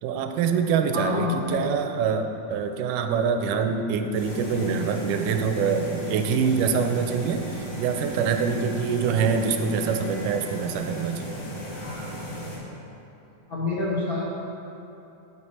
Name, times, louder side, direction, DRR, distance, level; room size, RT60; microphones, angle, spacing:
voice 1, 0.0-11.4, right 6 dB, 85° right, 7 dB, 2.0 m, -25 dB
voice 2, 0.9-1.6 13.5-14.2, left 3 dB, 85° left, -8 dB, 0.8 m, -27 dB
sound 1, 4.1-12.6, right 1 dB, 65° left, 3.4 m, -35 dB
10.0 x 4.8 x 4.2 m, 3.0 s
omnidirectional pair, 3.6 m